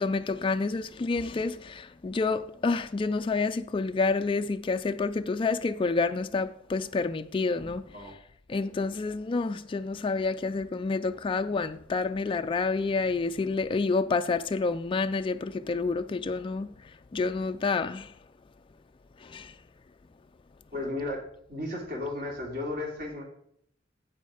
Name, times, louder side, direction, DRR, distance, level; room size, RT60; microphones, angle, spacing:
voice 1, 0.0-7.8 8.5-16.7 17.1-18.1 19.2-19.5, left 4 dB, 25° left, 0.3 m, -28 dB
voice 2, 20.7-23.2, left 2 dB, 50° right, 2.9 m, -34 dB
9.4 x 7.5 x 4.9 m
head